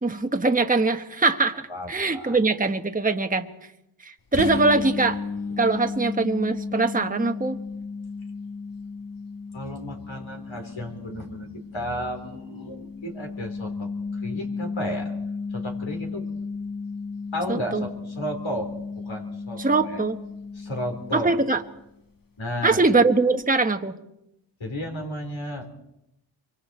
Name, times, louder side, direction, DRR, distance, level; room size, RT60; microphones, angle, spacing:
voice 1, 0.0-3.5 4.0-5.2 5.6-7.6 17.5-17.8 19.6-20.2 21.1-21.6 22.6-23.9, right 3 dB, 15° right, 6 dB, 1.1 m, -22 dB
voice 2, 1.7-2.4 9.5-13.9 14.2-15.1 15.5-16.3 17.3-20.0 20.5-21.3 22.4-22.8 24.6-25.7, equal, 75° left, 3 dB, 3.8 m, -33 dB
sound 1, 4.3-21.8, left 4 dB, 45° left, 1.3 m, -34 dB
25.0 x 24.0 x 4.3 m, 0.84 s
wide cardioid pair, 60°, 47 cm